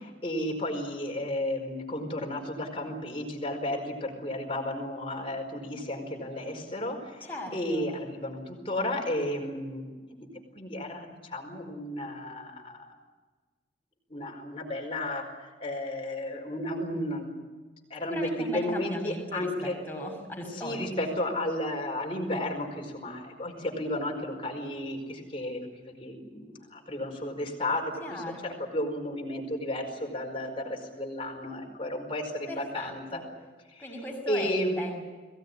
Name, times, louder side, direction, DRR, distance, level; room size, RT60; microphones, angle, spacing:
voice 1, 0.2-10.3 10.5-12.9 14.1-17.3 17.9-19.7 20.6-33.2 33.7-33.8 34.3-34.8, left 1 dB, 30° left, 2 dB, 4.9 m, -33 dB
voice 2, 7.2-7.9 18.1-21.1 28.0-28.6 32.5-33.2 33.8-35.0, left 1 dB, 10° left, 0 dB, 6.3 m, -38 dB
22.5 x 18.0 x 9.9 m, 1.4 s
head